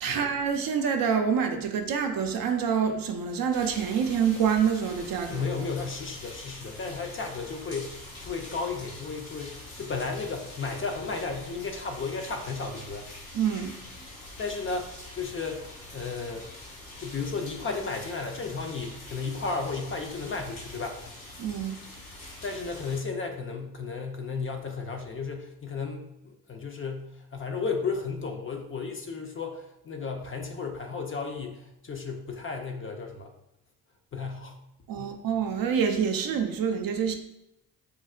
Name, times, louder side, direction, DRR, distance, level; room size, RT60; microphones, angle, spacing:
voice 1, 0.0-5.4 13.3-13.7 21.4-21.8 34.9-37.1, right 7 dB, 50° right, 5 dB, 0.5 m, -26 dB
sound 1, 3.5-23.0, left 2 dB, 85° left, 1.3 m, -45 dB
voice 2, 5.3-13.1 14.4-16.5 17.0-21.0 22.4-33.3 34.1-34.6 35.0-35.2, left 4 dB, 30° left, 3 dB, 0.5 m, -34 dB
4.3 x 2.0 x 2.4 m, 0.85 s
hypercardioid pair, 45°, 45 cm